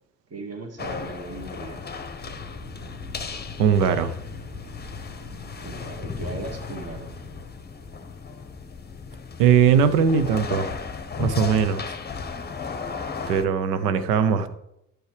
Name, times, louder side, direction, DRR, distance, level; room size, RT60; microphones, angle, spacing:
voice 1, 0.3-1.9 5.6-7.2, right 2 dB, 30° right, 3 dB, 1.9 m, -37 dB
sound 1, 0.8-13.4, left 5 dB, 20° left, 1.0 m, -35 dB
sound 2, 2.2-7.5, left 3 dB, 50° right, 3.1 m, -41 dB
voice 2, 3.6-4.1 9.4-10.7 11.2-11.8 13.3-14.5, right 7 dB, 80° right, 11 dB, 0.8 m, -20 dB
11.5 x 6.3 x 3.3 m, 0.82 s
hypercardioid pair, 50°, 47 cm